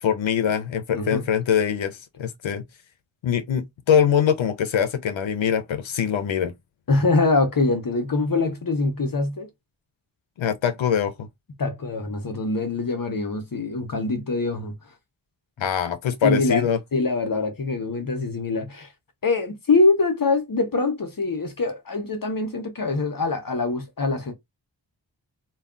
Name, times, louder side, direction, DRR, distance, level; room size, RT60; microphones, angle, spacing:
voice 1, 0.0-2.6 3.2-6.5 10.4-11.3 15.6-16.8, left 8 dB, 80° left, 0.6 m, -23 dB
voice 2, 6.9-9.5 11.6-14.7 16.2-18.9 19.2-24.3, left 3 dB, 50° left, 0.8 m, -24 dB
2.2 x 2.2 x 3.6 m
wide cardioid pair, 60°, 45 cm